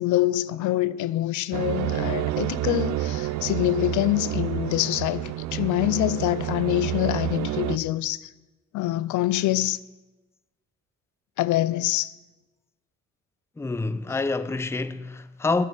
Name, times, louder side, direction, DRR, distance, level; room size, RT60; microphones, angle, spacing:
voice 1, 0.0-8.3 8.7-9.8 11.4-12.1, left 16 dB, 75° left, 0.4 m, -25 dB
sound 1, 1.5-7.8, right 14 dB, 65° right, 0.5 m, -29 dB
voice 2, 13.6-15.7, left 3 dB, 10° left, 0.4 m, -27 dB
8.1 x 7.4 x 8.1 m
cardioid pair, 90°, 30 cm